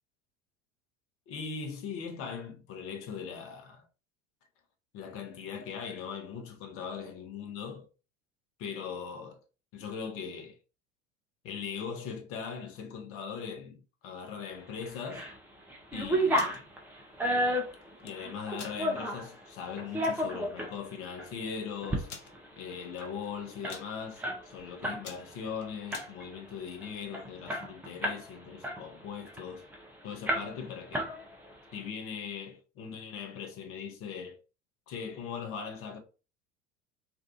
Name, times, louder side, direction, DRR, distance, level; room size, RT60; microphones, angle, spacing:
voice 1, 1.3-3.9 4.9-7.8 8.6-9.4 9.7-10.6 11.4-15.3 15.9-16.7 18.0-22.1 22.5-29.6 30.0-31.1 31.7-34.4 34.9-36.0, left 6 dB, 40° left, 0.7 m, -40 dB
sound 1, 14.8-15.4 15.7-19.3 19.8-20.7 21.2-21.3 21.7-22.0 22.3-22.4 22.7-25.0 25.3-25.5 25.9-26.4 26.8-26.9 27.1-28.3 28.6-29.8 30.3-30.7 30.9-31.6, equal, 5° right, 0.4 m, -32 dB
sound 2, 16.2-16.6 17.8-18.1 18.5-18.8 19.3-19.4 19.7-20.0 20.8-20.9 21.0-21.1 22.1-22.3 22.9-23.3 23.5-23.9 24.4-24.6 24.9-26.1, left 6 dB, 75° left, 0.6 m, -46 dB
2.6 x 2.3 x 2.4 m
figure-of-eight pair, 75°, 37 cm